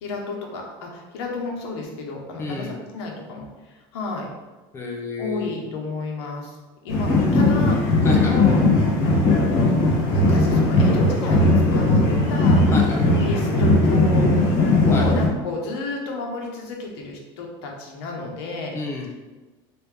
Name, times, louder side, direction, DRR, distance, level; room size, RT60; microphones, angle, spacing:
voice 1, 0.0-4.3 5.2-6.6 6.8-8.6 10.1-12.0 12.3-12.6 13.1-14.5 14.9-18.7, left 2 dB, 85° left, 0 dB, 0.9 m, -31 dB
voice 2, 2.4-2.8 4.7-5.5 8.0-8.3 12.7-13.0 14.9-15.1 18.7-19.1, left 3 dB, 20° left, 0 dB, 0.4 m, -29 dB
sound 1, 6.9-15.3, left 2 dB, 70° left, 1.3 m, -18 dB
3.3 x 2.6 x 3.2 m, 1.2 s
cardioid pair, 165°, 13 cm